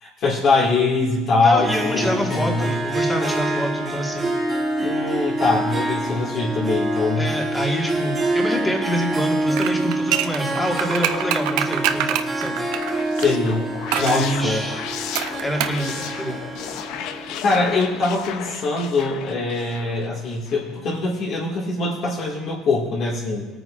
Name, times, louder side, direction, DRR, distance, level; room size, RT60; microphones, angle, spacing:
voice 1, 0.0-2.7 4.8-7.3 13.2-13.6 14.0-14.6 17.4-23.5, left 3 dB, 45° left, -5 dB, 2.0 m, -22 dB
voice 2, 1.4-4.3 7.2-12.6 14.0-14.8 15.4-16.4, equal, 5° left, 0 dB, 1.7 m, -26 dB
Harp, 1.6-18.1, right 2 dB, 15° right, 1.3 m, -26 dB
sound 1, 9.6-13.3 13.9-14.2 15.2-15.8 16.1-16.2, right 10 dB, 75° right, 0.6 m, -25 dB
sound 2, 12.7-20.8, left 9 dB, 60° left, 0.6 m, -35 dB
21.5 x 9.1 x 2.5 m, 1.2 s
cardioid pair, 160°, 0 cm